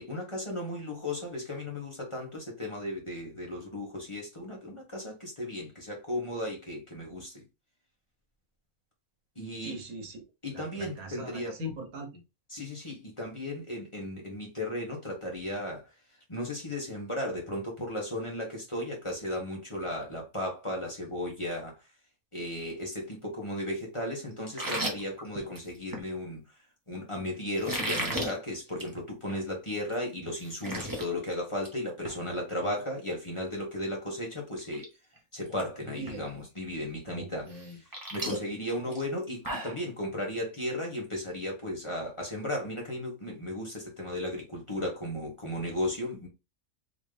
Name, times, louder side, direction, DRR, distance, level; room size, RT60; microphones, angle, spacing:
voice 1, 0.0-7.4 9.3-9.8 10.4-11.6 12.5-15.9 16.3-21.7 22.3-26.4 26.9-34.8 35.3-37.5 38.1-46.3, left 1 dB, 20° left, 1.4 m, -35 dB
voice 2, 9.6-10.2 10.5-12.2 32.6-32.8 35.8-36.3 37.1-37.8, right 1 dB, 80° right, 1.5 m, -41 dB
sound 1, 24.5-26.1 27.6-28.3 28.7-28.9 29.3-29.4 29.9-30.0 30.3-31.1 31.4-31.7 32.0-32.2 34.0-34.1 34.6-34.9 35.2-35.6 36.1-36.2 37.5-39.8, right 1 dB, 15° right, 0.9 m, -35 dB
3.9 x 3.1 x 3.3 m
omnidirectional pair, 1.5 m